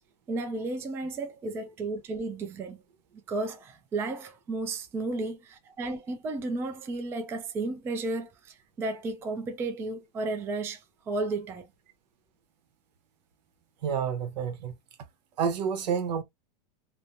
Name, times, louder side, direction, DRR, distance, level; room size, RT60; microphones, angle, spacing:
voice 1, 0.3-2.8 3.3-11.7, right 2 dB, 10° right, 0.3 m, -33 dB
voice 2, 13.8-14.7 15.4-16.2, right 7 dB, 80° right, 0.9 m, -29 dB
3.0 x 2.1 x 2.5 m
supercardioid pair, 155°, 21 cm